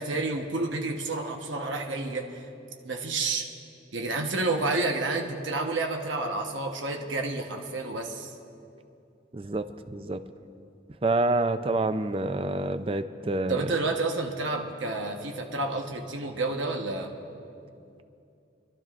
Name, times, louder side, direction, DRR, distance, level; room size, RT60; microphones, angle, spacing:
voice 1, 0.0-2.5 2.8-3.5 3.9-8.4 13.5-17.1, right 3 dB, 90° right, 2 dB, 1.1 m, -30 dB
voice 2, 9.3-10.2 11.0-13.7, right 2 dB, 30° right, 9 dB, 0.4 m, -27 dB
28.0 x 12.0 x 2.5 m, 2.7 s
head